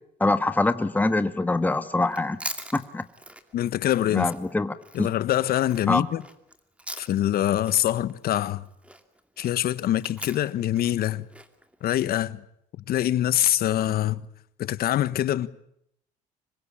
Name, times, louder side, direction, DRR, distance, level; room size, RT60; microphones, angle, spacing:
voice 1, 0.2-2.4 2.7-3.0 4.1-5.1 5.9-6.1, left 2 dB, 10° left, 1.3 m, -24 dB
Chewing mastication, 2.0-7.4 7.6-12.0, right 1 dB, 5° right, 2.5 m, -42 dB
voice 2, 3.5-4.3 4.9-6.2 7.0-8.6 9.4-11.3 11.8-12.4 12.9-14.3 14.6-15.5, left 12 dB, 65° left, 1.3 m, -24 dB
26.5 x 22.0 x 8.8 m
cardioid pair, 110°, 17 cm